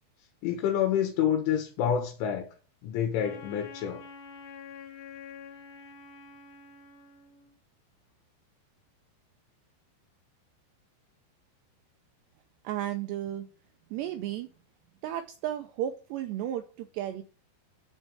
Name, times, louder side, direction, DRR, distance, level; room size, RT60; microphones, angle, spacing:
voice 1, 0.4-2.5 2.8-4.0, left 9 dB, 80° left, 3.7 m, -28 dB
Wind instrument woodwind instrument, 3.2-7.6, left 5 dB, 60° left, 2.8 m, -47 dB
voice 2, 12.6-13.5 13.9-14.5 15.0-17.2, right 12 dB, 85° right, 2.4 m, -33 dB
10.5 x 4.6 x 5.4 m
omnidirectional pair, 5.7 m